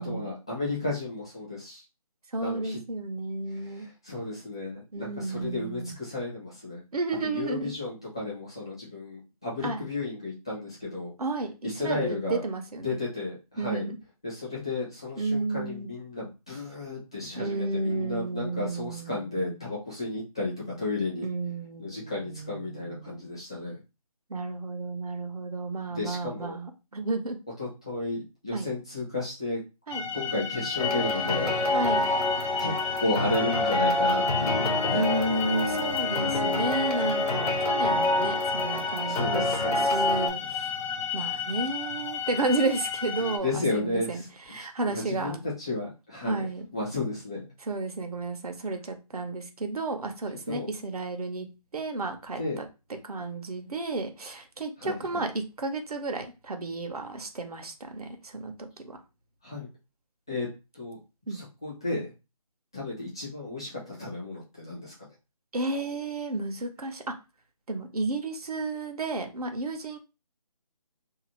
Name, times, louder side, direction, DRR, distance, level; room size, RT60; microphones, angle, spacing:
voice 1, 0.0-1.8 2.4-2.8 3.5-6.8 7.2-11.1 11.6-12.4 12.8-13.9 14.2-20.5 20.8-21.3 21.8-23.8 25.9-26.6 27.6-29.6 30.1-31.6 32.0-32.1 32.6-35.0 39.0-40.0 43.2-44.3 44.6-46.5 46.7-47.4 50.5-50.7 52.4-52.6 54.8-55.2 59.4-59.7 60.3-60.5 60.7-61.0 61.3-62.1 62.7-64.9, left 2 dB, 10° left, -7 dB, 0.4 m, -33 dB
voice 2, 2.3-3.9 4.9-5.9 6.9-7.7 9.6-9.8 11.2-13.0 13.6-14.0 15.2-15.9 17.4-19.6 21.2-23.4 24.3-27.4 28.5-28.7 29.9-30.0 31.7-32.1 34.9-40.7 41.1-44.2 44.5-45.4 46.2-46.7 47.6-51.5 51.7-52.6 53.0-59.0 61.3-61.4 65.5-67.1 67.7-70.0, right 2 dB, 75° right, 6 dB, 0.8 m, -32 dB
sound 1, 29.9-43.4, left 8 dB, 55° left, 0.6 m, -33 dB
sound 2, 30.8-40.3, left 1 dB, 75° left, 0.9 m, -27 dB
2.7 x 2.0 x 3.0 m, 0.28 s
figure-of-eight pair, 165°, 20 cm